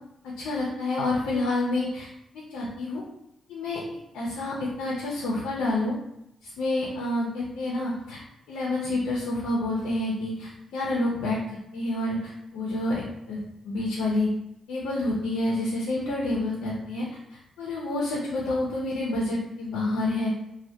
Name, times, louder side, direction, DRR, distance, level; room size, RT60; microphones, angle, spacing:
voice 1, 0.2-2.1 2.5-3.0 3.5-3.8 4.1-5.9 6.4-8.2 8.5-14.3 14.7-17.0 17.3-20.3, left 2 dB, 85° left, -4 dB, 0.4 m, -28 dB
2.1 x 2.1 x 2.7 m, 0.79 s
supercardioid pair, 60°, 0 cm